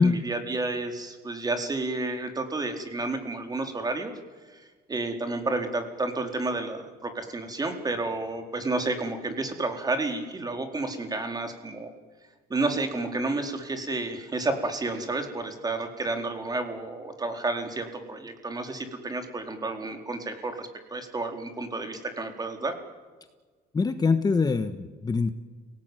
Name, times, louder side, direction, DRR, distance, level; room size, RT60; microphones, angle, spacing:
voice 1, 0.0-4.1 4.5-11.9 12.5-22.7, right 2 dB, 25° right, 5 dB, 4.3 m, -31 dB
voice 2, 23.7-25.3, left 4 dB, 25° left, 9 dB, 1.4 m, -23 dB
29.5 x 18.5 x 9.2 m, 1.4 s
cardioid pair, 110°, 17 cm